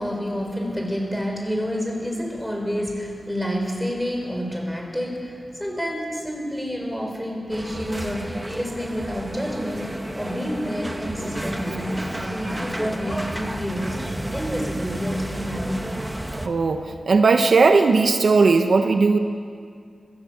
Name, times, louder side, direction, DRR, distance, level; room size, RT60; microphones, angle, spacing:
voice 1, 0.0-14.0 14.3-16.0, equal, 5° left, 1 dB, 6.5 m, -29 dB
sound 1, 7.5-16.5, right 1 dB, 15° right, 1.9 m, -31 dB
voice 2, 16.4-19.2, right 4 dB, 70° right, 6 dB, 1.2 m, -17 dB
25.5 x 16.0 x 8.4 m, 2.2 s
cardioid pair, 60°, 0 cm